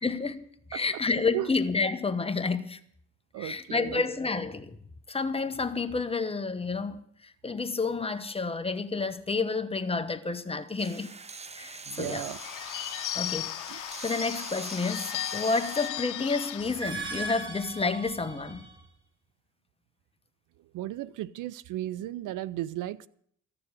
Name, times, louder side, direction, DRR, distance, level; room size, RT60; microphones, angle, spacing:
voice 1, 0.0-2.8 3.4-4.8 5.1-11.1 11.5-12.3 13.1-18.6, left 4 dB, 20° left, 1.1 m, -30 dB
voice 2, 3.3-4.0 11.9-12.4 13.7-13.8 20.7-23.1, right 14 dB, 85° right, 0.6 m, -35 dB
sound 1, 10.8-15.9, right 4 dB, 20° right, 0.7 m, -43 dB
Bird / Bell, 11.9-16.9, left 14 dB, 85° left, 0.7 m, -36 dB
sound 2, 16.6-18.9, right 2 dB, 40° right, 3.1 m, -38 dB
14.0 x 7.0 x 9.7 m
cardioid pair, 90°, 30 cm